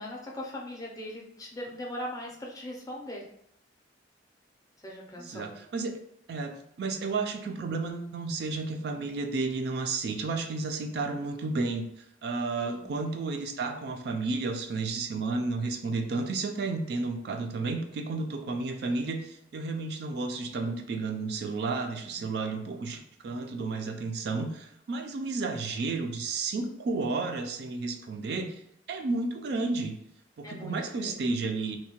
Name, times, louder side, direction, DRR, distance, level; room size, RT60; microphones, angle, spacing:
voice 1, 0.0-3.2 4.8-5.5 12.6-12.9 22.2-22.3 30.4-31.2, left 1 dB, 20° left, -2 dB, 0.4 m, -40 dB
voice 2, 5.2-5.9 6.3-11.9 12.2-28.6 28.9-30.0 30.4-31.8, right 3 dB, 60° right, 4 dB, 0.3 m, -32 dB
2.7 x 2.1 x 2.8 m, 0.73 s
head